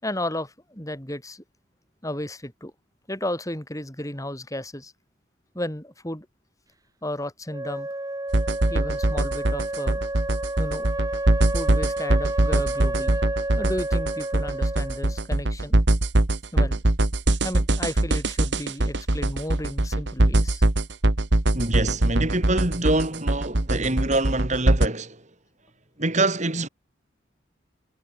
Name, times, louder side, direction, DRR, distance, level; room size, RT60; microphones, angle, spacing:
voice 1, 0.0-1.4 2.0-2.7 3.1-4.9 5.5-6.3 7.0-7.9 8.7-10.0 10.6-10.8 11.5-13.2 13.6-15.7 16.5-16.8 17.4-20.7, left 1 dB, 15° left, 6.3 m, -33 dB
Wind instrument woodwind instrument, 7.5-15.2, right 1 dB, 20° right, 1.7 m, -31 dB
sound 1, 8.3-24.9, right 2 dB, 60° right, 1.4 m, -22 dB
voice 2, 21.5-25.2 26.0-26.7, right 2 dB, 40° right, 3.4 m, -25 dB
head